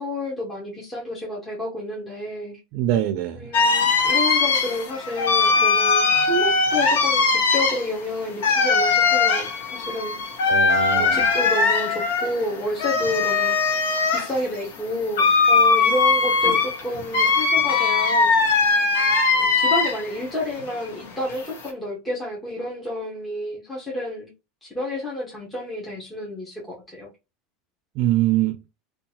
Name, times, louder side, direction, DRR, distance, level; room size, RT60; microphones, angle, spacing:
voice 1, 0.0-2.6 3.4-10.2 10.9-13.6 14.1-18.3 19.4-24.3 24.6-27.1, left 1 dB, 10° left, 0.7 m, -30 dB
voice 2, 2.7-3.5 10.5-11.2 28.0-28.7, right 13 dB, 50° right, 0.4 m, -23 dB
sound 1, 3.5-20.2 20.5-21.7, left 4 dB, 90° left, 0.8 m, -20 dB
2.7 x 2.3 x 2.8 m
supercardioid pair, 165°, 0 cm